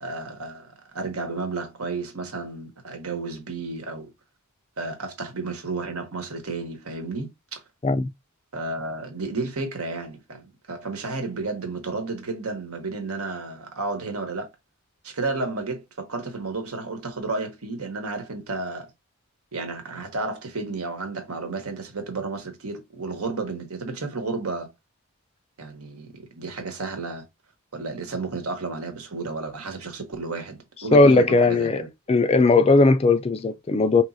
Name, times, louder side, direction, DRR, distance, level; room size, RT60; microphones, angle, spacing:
voice 1, 0.0-4.1 4.8-7.6 8.5-14.5 15.0-18.9 19.5-24.7 25.6-27.3 27.7-31.9 33.7-33.9, right 3 dB, 80° right, 1.2 m, -32 dB
voice 2, 30.9-31.8 32.1-34.0, left 3 dB, 25° left, 0.3 m, -17 dB
4.7 x 3.0 x 2.6 m
head